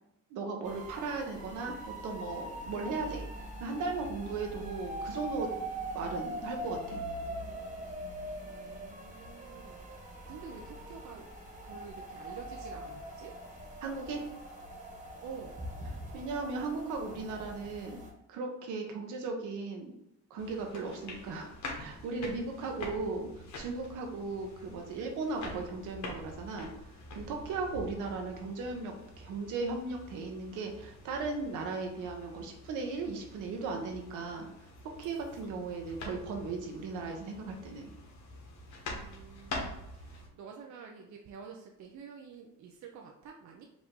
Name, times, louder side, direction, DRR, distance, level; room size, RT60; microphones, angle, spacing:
voice 1, 0.3-3.2 3.6-5.5 5.9-7.0 13.8-14.2 16.1-18.0 18.3-19.9 20.3-21.5 21.8-23.3 23.6-26.7 27.1-34.5 35.0-37.9, right 3 dB, 85° right, 2 dB, 0.9 m, -37 dB
sound 1, 0.6-18.1, right 1 dB, 25° right, 1.4 m, -42 dB
voice 2, 8.4-11.3 11.6-13.4 15.2-15.6 22.6-23.5 38.9-43.7, right 6 dB, 70° right, 1 dB, 0.6 m, -49 dB
sound 2, 20.4-40.3, left 2 dB, 70° left, 1.2 m, -46 dB
4.9 x 2.6 x 3.7 m, 0.84 s
cardioid pair, 90°, 30 cm